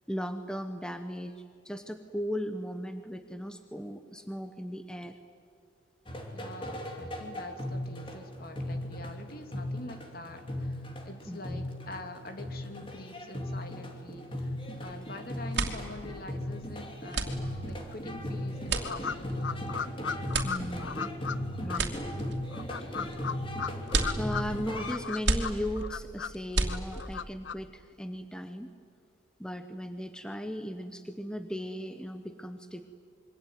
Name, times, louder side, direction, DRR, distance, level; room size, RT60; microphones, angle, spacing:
voice 1, 0.1-5.2 11.3-11.6 20.4-21.1 21.6-22.0 22.8-22.9 24.1-28.7 29.4-32.9, equal, 5° left, 8 dB, 0.9 m, -37 dB
sound 1, 6.1-24.9, left 1 dB, 25° left, 2.9 m, -37 dB
voice 2, 6.3-19.8, left 2 dB, 50° left, 6 dB, 2.6 m, -45 dB
sound 2, 14.9-15.1 15.4-27.3, right 3 dB, 65° right, 2.7 m, -34 dB
sound 3, 18.8-21.4 21.7-21.8 22.5-24.4 24.7-26.3 26.7-27.5, left 6 dB, 75° left, 0.7 m, -36 dB
26.5 x 23.5 x 9.4 m, 2.3 s
head